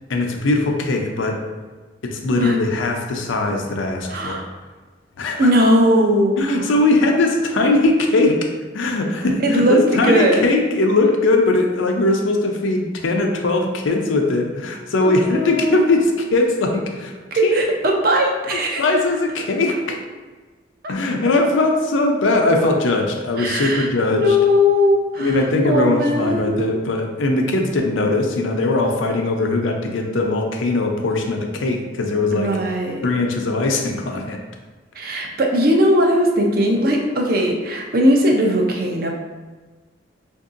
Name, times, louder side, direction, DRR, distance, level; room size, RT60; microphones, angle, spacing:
voice 1, 0.1-1.4 2.0-4.4 5.2-5.5 6.4-17.1 17.4-17.6 18.5-20.0 20.9-24.4 25.2-32.5 33.0-34.4, left 2 dB, 90° left, 3 dB, 0.5 m, -20 dB
voice 2, 4.1-4.5 5.4-6.4 9.4-10.4 15.0-16.0 17.4-18.8 20.8-20.9 23.4-26.8 32.3-33.0 35.0-39.1, equal, 50° right, 1 dB, 0.5 m, -19 dB
4.5 x 2.6 x 2.5 m, 1.3 s
head